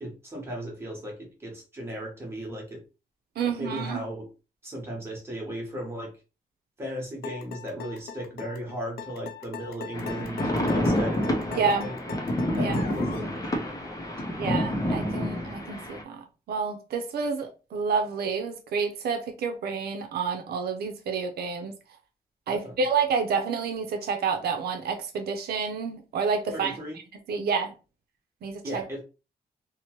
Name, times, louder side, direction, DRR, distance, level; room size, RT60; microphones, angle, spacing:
voice 1, 0.0-2.8 3.4-4.3 4.6-6.1 6.8-12.0 12.5-14.6 22.5-22.7 26.5-27.0 28.6-29.0, equal, 15° right, 1.0 m, -37 dB
voice 2, 3.4-4.0 11.5-11.9 12.5-13.0 14.4-21.7 22.5-26.8 27.3-27.7 28.4-28.8, right 5 dB, 85° right, 0.5 m, -29 dB
sound 1, 7.2-13.3, left 6 dB, 80° left, 0.4 m, -40 dB
sound 2, 9.9-16.0, left 1 dB, 20° left, 0.5 m, -28 dB
2.8 x 2.0 x 2.8 m
wide cardioid pair, 155°, 16 cm